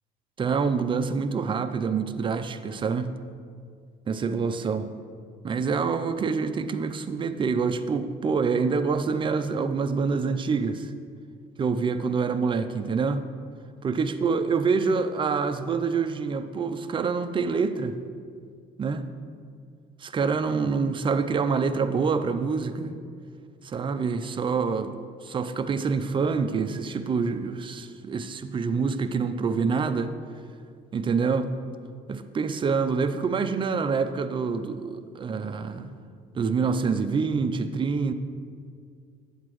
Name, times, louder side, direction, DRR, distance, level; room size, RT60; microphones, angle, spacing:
voice 1, 0.4-3.1 4.1-4.9 5.4-10.9 11.6-13.3 13.8-17.9 18.8-19.1 20.0-22.9 23.6-25.0 25.2-30.1 30.9-31.5 32.1-35.9 36.3-38.1, right 5 dB, 30° right, 9 dB, 0.5 m, -26 dB
8.4 x 8.1 x 3.1 m, 2.1 s
cardioid pair, 110°, 17 cm